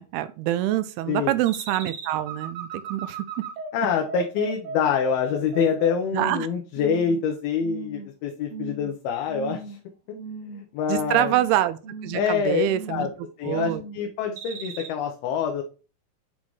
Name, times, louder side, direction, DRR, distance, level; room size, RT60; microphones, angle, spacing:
voice 1, 0.0-3.2 6.1-6.5 10.9-13.1 13.4-13.8, right 14 dB, 90° right, 2.6 m, -25 dB
sound 1, 1.5-6.4 6.8-7.2 7.6-8.1 8.5-8.9 9.3-9.8 10.2-10.7 11.0-11.5 11.8-12.3 12.7-13.2 13.5-14.0 14.4-14.9, right 4 dB, 65° right, 1.7 m, -37 dB
voice 2, 3.7-9.8 10.5-11.3 12.1-13.1 13.4-15.6, left 7 dB, 80° left, 2.7 m, -26 dB
8.4 x 3.9 x 3.1 m
omnidirectional pair, 4.5 m